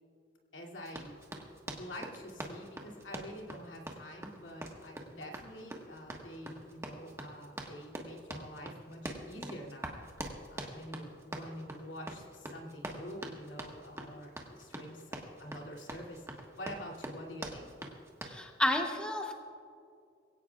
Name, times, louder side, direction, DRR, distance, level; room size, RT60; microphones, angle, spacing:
voice 1, 0.5-1.2 1.6-10.0 10.5-17.7, equal, 75° left, -1 dB, 2.7 m, -47 dB
Run, 0.8-18.4, right 1 dB, 15° right, 1.4 m, -44 dB
voice 2, 18.2-19.3, left 1 dB, 5° left, 2 dB, 0.9 m, -31 dB
22.5 x 17.0 x 2.4 m, 2.3 s
head